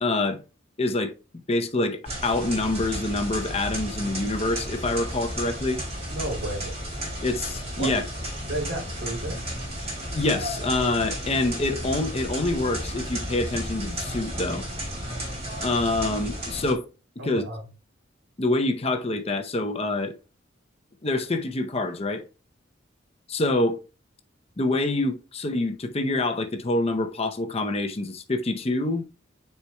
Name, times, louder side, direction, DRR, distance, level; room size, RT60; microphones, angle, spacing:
voice 1, 0.0-0.4 0.8-1.1 1.5-5.8 7.2-8.0 10.1-14.6 15.6-16.9 17.2-17.4 18.4-20.1 21.0-22.2 23.3-23.8 24.6-29.0, left 2 dB, 30° left, 0.7 m, -26 dB
sound 1, 2.0-16.7, equal, 30° right, 3.4 m, -33 dB
voice 2, 6.1-6.8 7.8-8.0 8.4-9.4 17.2-17.7, right 1 dB, 70° right, 2.6 m, -33 dB
9.9 x 4.5 x 2.3 m
head